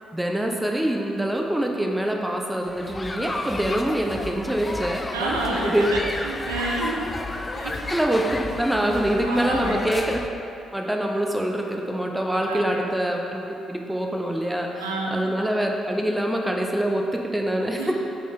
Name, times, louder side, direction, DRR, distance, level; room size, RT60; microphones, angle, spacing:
voice 1, 0.1-5.9 7.9-10.2 10.7-13.4 13.7-17.9, right 1 dB, 5° right, 1 dB, 1.1 m, -25 dB
sound 1, 2.7-10.3, left 2 dB, 25° left, 0.6 m, -32 dB
voice 2, 5.1-7.0 7.6-7.7 9.2-9.9 12.3-12.8 14.7-15.3 17.8-17.9, right 2 dB, 90° right, -3 dB, 1.0 m, -29 dB
7.6 x 7.5 x 3.8 m, 2.8 s
hypercardioid pair, 45°, 0 cm